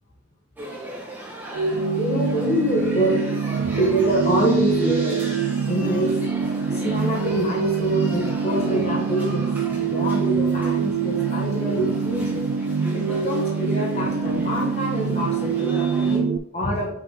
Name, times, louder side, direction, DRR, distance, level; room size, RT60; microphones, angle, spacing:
sound 1, 0.6-16.2, right 1 dB, 10° right, 1.2 m, -37 dB
sound 2, 1.5-16.4, right 6 dB, 70° right, 0.4 m, -25 dB
voice 1, 2.0-3.2 3.6-5.2 5.7-6.1 6.7-9.5 9.7-12.4 12.9-16.9, equal, 30° left, -2 dB, 1.0 m, -25 dB
5.6 x 5.0 x 3.6 m, 0.74 s
head